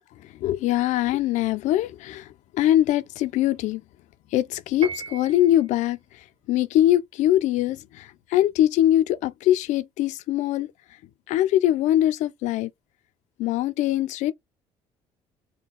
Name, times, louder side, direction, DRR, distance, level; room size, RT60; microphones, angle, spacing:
voice 1, 0.2-3.8 4.3-10.7 11.3-12.7 13.4-14.3, left 13 dB, 75° left, 0.6 m, -22 dB
Piano, 4.8-5.7, right 5 dB, 55° right, 0.8 m, -36 dB
4.2 x 2.3 x 3.5 m
cardioid pair, 95°, 13 cm